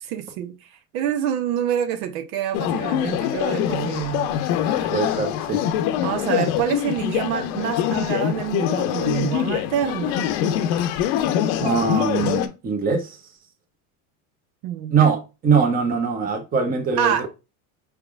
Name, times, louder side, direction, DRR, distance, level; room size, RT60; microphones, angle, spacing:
voice 1, 0.0-4.9 6.0-10.2 14.6-15.1 17.0-17.3, right 10 dB, 80° right, 0.7 m, -27 dB
sound 1, 2.5-12.5, left 10 dB, 80° left, 0.7 m, -24 dB
voice 2, 4.9-5.6 11.6-13.2 14.9-17.3, right 5 dB, 20° right, 0.8 m, -22 dB
4.8 x 3.4 x 2.3 m
supercardioid pair, 125°, 42 cm